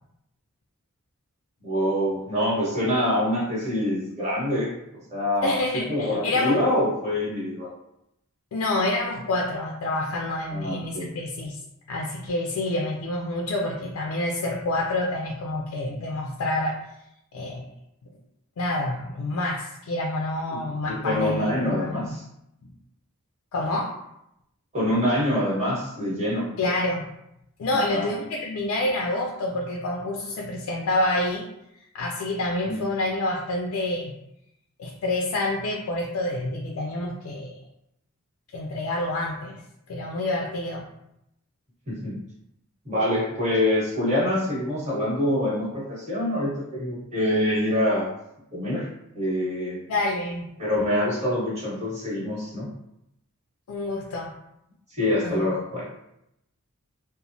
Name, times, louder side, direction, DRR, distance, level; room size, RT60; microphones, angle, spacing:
voice 1, 1.6-4.7 5.1-5.6 5.9-7.7 10.5-11.1 20.5-22.2 24.7-26.5 27.7-28.1 32.6-32.8 41.9-42.2 42.8-48.0 48.5-48.9 49.1-49.8 50.6-52.7 55.0-55.9, left 1 dB, 30° right, -7 dB, 1.1 m, -25 dB
voice 2, 5.4-6.6 8.5-11.6 11.9-16.8 17.3-17.7 18.6-22.1 23.5-23.9 26.6-27.1 27.6-31.5 31.8-34.1 34.8-37.6 38.5-39.6 39.9-40.8 49.9-50.5 53.7-54.3 55.2-55.4, left 2 dB, 70° left, 0 dB, 0.4 m, -28 dB
3.0 x 2.1 x 2.6 m, 0.81 s
head